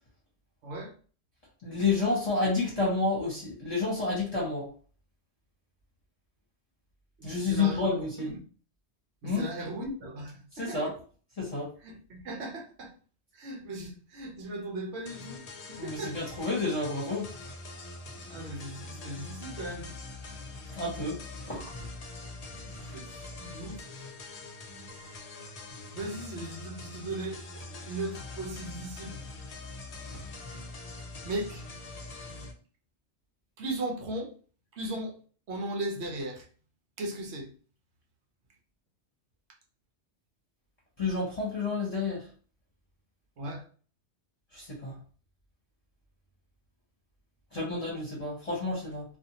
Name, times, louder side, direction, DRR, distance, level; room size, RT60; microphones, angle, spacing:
voice 1, 0.6-0.9 7.2-8.4 9.2-10.9 11.8-12.9 13.3-15.4 15.7-16.3 18.3-19.9 21.5-21.7 22.9-23.8 25.9-29.2 30.1-30.2 31.2-31.6 33.6-34.3 34.7-35.2 35.5-36.5 37.0-37.5 43.4-43.6, right 1 dB, 75° right, 1.0 m, -37 dB
voice 2, 1.6-4.7 7.2-8.3 9.2-9.4 10.5-10.9 11.4-11.7 15.8-17.3 20.8-21.2 21.5-21.6 41.0-42.2 44.5-44.9 47.5-49.0, left 3 dB, 35° left, 0.9 m, -30 dB
sound 1, 15.0-32.5, left 2 dB, 50° left, 0.5 m, -43 dB
2.6 x 2.4 x 2.7 m
omnidirectional pair, 1.1 m